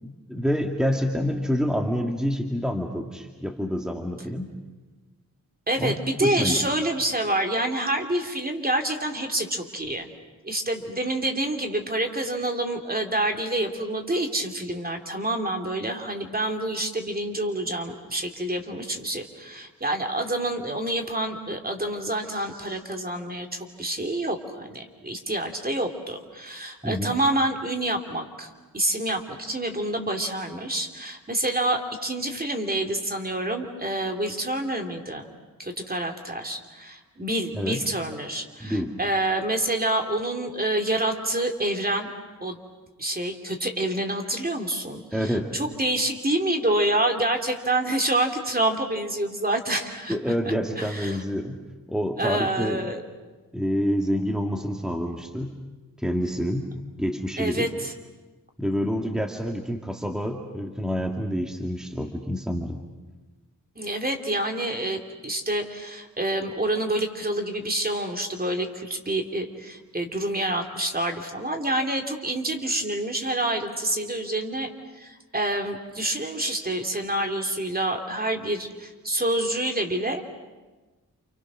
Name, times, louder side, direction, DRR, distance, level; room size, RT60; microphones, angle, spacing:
voice 1, 0.0-4.5 5.8-6.6 26.8-27.1 37.5-37.8 38.6-39.0 45.1-45.5 50.1-51.6 51.9-52.9 53.5-55.5 56.0-56.7 57.0-57.7 58.6-62.8, equal, ahead, 2 dB, 2.1 m, -27 dB
voice 2, 5.7-10.1 10.4-35.3 35.6-42.1 42.4-42.6 43.0-50.1 50.8-51.2 52.2-53.0 57.4-57.9 63.8-74.7 75.0-80.2, right 1 dB, 25° right, 4 dB, 2.9 m, -27 dB
30.0 x 28.0 x 6.3 m, 1.2 s
wide cardioid pair, 85°, 35 cm